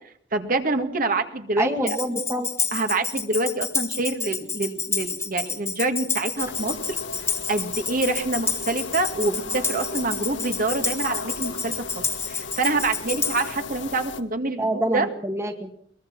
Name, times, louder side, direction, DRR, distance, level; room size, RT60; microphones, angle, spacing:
voice 1, 0.3-2.0 2.7-6.8 7.5-15.1, right 2 dB, 50° right, 7 dB, 2.0 m, -26 dB
voice 2, 1.6-2.5 14.6-15.7, right 1 dB, 15° right, 6 dB, 1.6 m, -26 dB
Tambourine, 1.9-13.6, left 5 dB, 15° left, 1.6 m, -29 dB
sound 1, 6.4-14.2, left 4 dB, 70° left, 1.6 m, -36 dB
22.5 x 21.0 x 6.0 m, 0.63 s
head